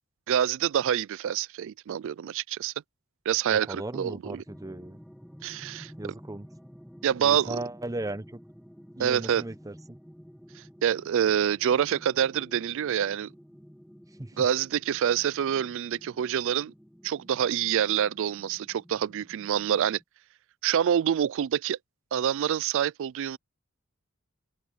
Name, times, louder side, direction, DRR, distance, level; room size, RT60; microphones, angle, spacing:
voice 1, 0.3-2.7 3.3-4.4 5.4-5.9 7.0-7.6 9.0-9.4 10.6-13.3 14.4-16.7 17.0-20.0 20.6-21.8 22.1-23.4, right 9 dB, 60° right, 0.3 m, -26 dB
voice 2, 3.5-5.0 6.0-6.5 7.2-8.4 8.9-9.7 14.2-14.5, right 1 dB, 15° right, 0.7 m, -37 dB
sound 1, 4.5-20.0, equal, ahead, 6.2 m, -51 dB
head